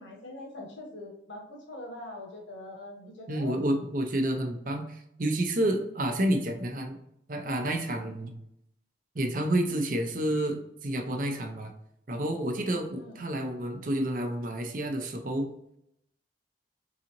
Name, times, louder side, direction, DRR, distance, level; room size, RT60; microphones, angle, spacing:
voice 1, 0.0-3.6 13.0-13.3, left 1 dB, 85° left, 1 dB, 1.1 m, -43 dB
voice 2, 3.3-7.0 7.3-8.3 9.1-11.7 12.1-15.5, right 1 dB, 45° right, 5 dB, 0.6 m, -29 dB
4.0 x 3.8 x 2.9 m, 0.78 s
head